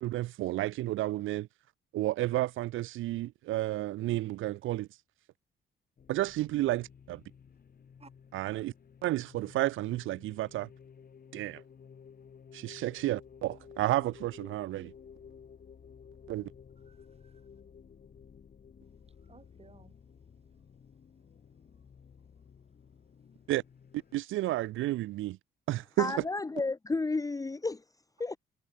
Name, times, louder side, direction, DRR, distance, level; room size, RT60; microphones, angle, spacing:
voice 1, 0.0-1.5 1.9-4.9 6.1-7.2 8.3-8.7 9.0-10.7 11.3-11.6 12.5-14.9 16.3-16.5 23.5-23.6 24.1-25.4 25.7-26.2, right 16 dB, 80° right, 0.6 m, -31 dB
sound 1, 6.0-24.2, left 7 dB, 45° left, 5.0 m, -54 dB
voice 2, 16.8-17.6 18.8-20.6 20.9-22.9 23.2-23.4, right 4 dB, 30° right, 7.3 m, -64 dB
voice 3, 26.0-27.8 28.2-28.4, left 3 dB, 15° left, 0.9 m, -32 dB
cardioid pair, 90°, 20 cm